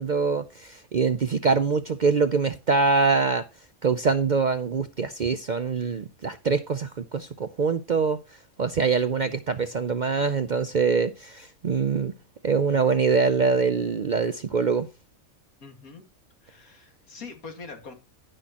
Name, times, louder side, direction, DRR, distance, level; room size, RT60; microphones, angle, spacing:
voice 1, 0.0-3.4 3.8-8.2 8.6-12.1 12.4-14.9, right 5 dB, 50° right, 0.5 m, -24 dB
voice 2, 15.6-16.0 16.4-17.9, left 4 dB, 85° left, 2.5 m, -43 dB
18.0 x 6.2 x 2.9 m
omnidirectional pair, 1.5 m